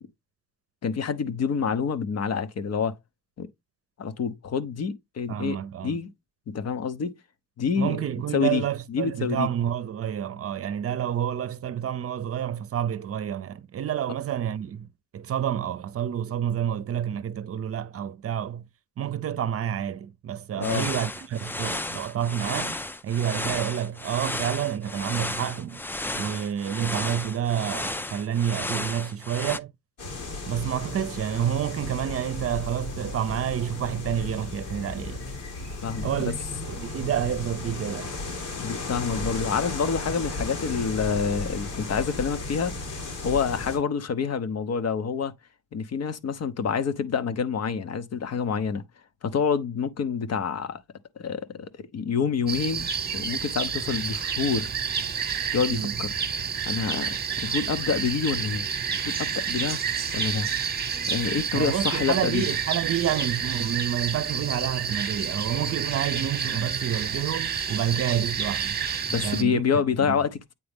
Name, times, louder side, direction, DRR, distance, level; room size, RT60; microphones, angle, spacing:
voice 1, 0.8-3.0 3.4-3.5 4.0-6.1 6.5-7.2 7.6-8.0 8.3-9.5 20.6-20.9 35.8-36.4 38.6-45.3 45.7-48.8 49.2-50.8 51.2-54.7 55.5-56.1 56.6-58.7 58.9-59.8 60.1-60.5 61.1-62.6 69.1-70.5, left 6 dB, 55° left, 1.0 m, -27 dB
voice 2, 5.3-5.9 7.8-18.6 19.0-22.8 23.0-25.8 26.1-29.7 30.5-35.2 36.0-36.3 36.7-38.1 55.7-55.9 61.5-68.8 69.2-69.6 70.0-70.2, right 9 dB, 50° right, 0.7 m, -29 dB
sound 1, 20.6-29.6, left 2 dB, 5° left, 0.4 m, -33 dB
sound 2, 30.0-43.8, left 3 dB, 90° left, 4.0 m, -35 dB
sound 3, 52.5-69.4, right 6 dB, 30° right, 1.1 m, -29 dB
8.6 x 3.8 x 3.5 m
cardioid pair, 90°, 30 cm